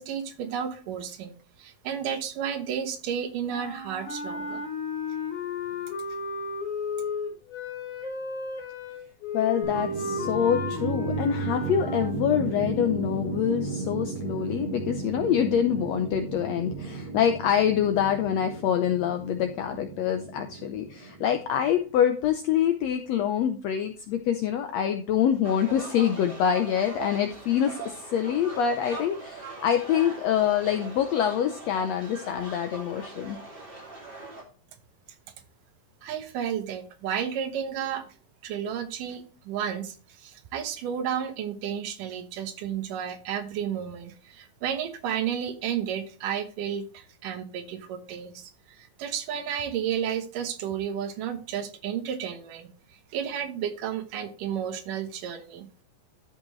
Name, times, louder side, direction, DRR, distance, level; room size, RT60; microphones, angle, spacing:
voice 1, 0.0-4.6 36.0-38.1 38.4-55.7, right 8 dB, 80° right, 9 dB, 2.7 m, -32 dB
sound 1, 3.5-12.2, left 4 dB, 55° left, 4.0 m, -33 dB
voice 2, 9.3-33.4, left 9 dB, 75° left, 6 dB, 1.5 m, -25 dB
sound 2, 9.6-21.8, right 4 dB, 40° right, 2.9 m, -34 dB
sound 3, 25.4-34.4, right 3 dB, 20° right, 2.1 m, -41 dB
12.5 x 5.5 x 3.1 m, 0.39 s
omnidirectional pair, 3.8 m